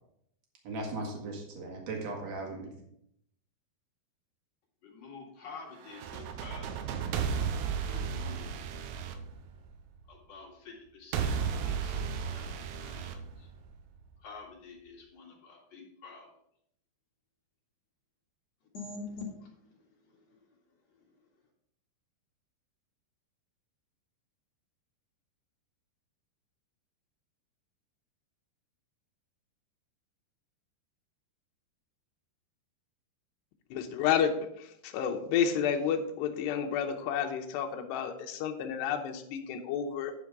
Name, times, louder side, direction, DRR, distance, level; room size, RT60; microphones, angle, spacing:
voice 1, 0.6-2.7, right 2 dB, 50° right, 0 dB, 2.5 m, -37 dB
voice 2, 4.8-6.8 7.8-8.6 10.1-13.5 14.2-16.3 18.7-20.4 21.0-21.1, left 4 dB, 45° left, -2 dB, 2.9 m, -47 dB
sound 1, 5.9-10.0 11.1-14.0, right 6 dB, 85° right, 2.7 m, -34 dB
voice 3, 33.7-34.3 34.6-40.1, left 8 dB, 80° left, 3 dB, 3.0 m, -30 dB
10.5 x 5.3 x 4.8 m, 0.73 s
omnidirectional pair, 4.8 m